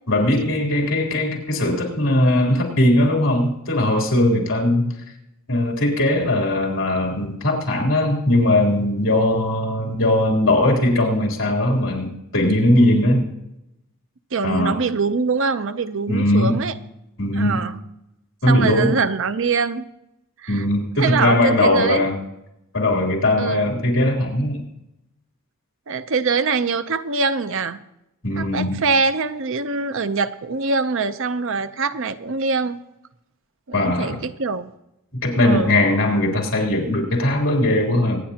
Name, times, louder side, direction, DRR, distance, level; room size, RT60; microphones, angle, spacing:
voice 1, 0.1-4.9 5.5-13.3 14.4-14.8 16.1-16.6 17.2-17.6 18.4-19.0 20.5-22.1 22.7-24.6 28.2-28.8 33.7-34.2 35.2-38.2, left 1 dB, 65° left, -1 dB, 3.5 m, -19 dB
voice 2, 14.3-16.7 17.3-17.8 18.5-19.9 20.4-20.6 21.0-22.1 23.4-23.7 25.9-27.8 28.4-32.8 33.7-34.7 35.4-35.8, right 4 dB, 65° right, 11 dB, 0.7 m, -23 dB
25.0 x 9.7 x 2.9 m, 0.88 s
head